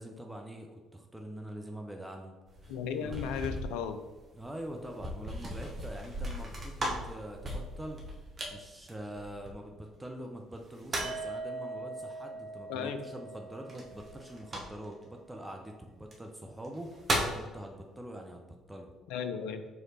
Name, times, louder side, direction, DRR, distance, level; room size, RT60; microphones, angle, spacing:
voice 1, 0.0-2.4 3.0-3.2 4.3-8.0 8.5-16.9 17.3-18.9, right 1 dB, 10° right, 2 dB, 0.5 m, -44 dB
sound 1, 2.5-9.9 10.5-11.3 13.7-15.0 16.0-16.1 16.6-17.5, right 1 dB, 35° right, 1.0 m, -37 dB
voice 2, 2.7-4.0 12.7-13.0 19.1-19.7, left 7 dB, 65° left, 8 dB, 0.3 m, -35 dB
sound 2, 11.0-14.8, right 3 dB, 60° right, 1.3 m, -42 dB
4.8 x 3.0 x 2.8 m, 1.2 s
figure-of-eight pair, 50°, 0 cm